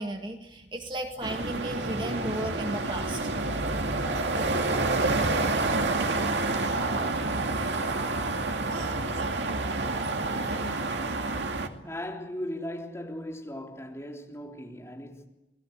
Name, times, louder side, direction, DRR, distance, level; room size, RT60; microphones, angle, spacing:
voice 1, 0.0-3.2 11.8-11.9, right 1 dB, 25° right, 2.0 m, -34 dB
sound 1, 1.2-11.7, right 2 dB, 90° right, 2.4 m, -28 dB
voice 2, 10.2-11.1 11.8-15.3, left 1 dB, 15° left, 3.6 m, -38 dB
29.5 x 19.5 x 8.0 m
head